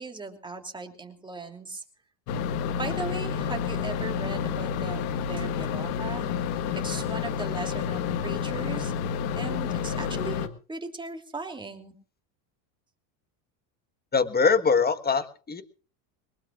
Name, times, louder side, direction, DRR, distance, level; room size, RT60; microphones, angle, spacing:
voice 1, 0.0-1.8 2.8-6.3 6.7-8.9 9.3-11.9, right 3 dB, 10° right, 4 dB, 3.0 m, -38 dB
sound 1, 2.3-10.5, left 7 dB, 65° left, 1.7 m, -29 dB
voice 2, 14.1-15.6, left 5 dB, 20° left, 11 dB, 1.4 m, -23 dB
23.0 x 20.0 x 2.5 m, 0.38 s
supercardioid pair, 115°, 50 cm